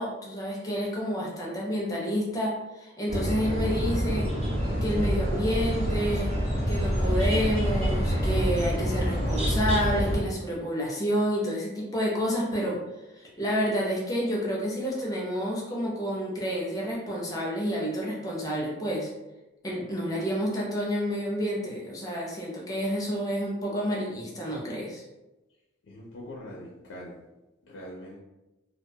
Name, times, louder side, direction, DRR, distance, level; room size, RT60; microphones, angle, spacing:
voice 1, 0.0-4.3 4.8-6.3 6.7-12.8 13.2-19.1 19.6-25.0, equal, 20° left, -4 dB, 0.5 m, -29 dB
sound 1, 3.1-10.2, equal, 35° right, 0.6 m, -26 dB
voice 2, 25.8-27.2 27.6-28.2, left 1 dB, 70° left, -3 dB, 0.4 m, -42 dB
2.3 x 2.2 x 2.7 m, 1.0 s
head